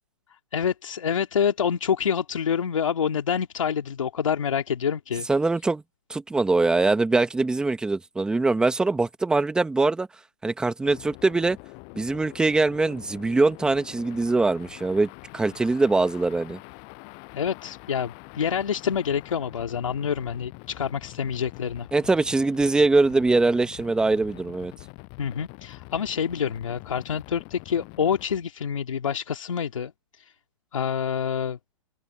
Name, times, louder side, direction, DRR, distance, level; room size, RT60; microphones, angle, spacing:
voice 1, 0.5-5.3 17.3-21.9 25.2-29.9 30.2-30.3 30.7-31.6, left 7 dB, 80° left, 2.4 m, -27 dB
voice 2, 5.3-5.8 6.1-10.1 10.4-11.6 11.9-16.6 21.9-24.7, right 3 dB, 5° right, 1.3 m, -22 dB
sound 1, 10.8-28.3, left 39 dB, 30° left, 6.5 m, -45 dB
hypercardioid pair, 150°, 16 cm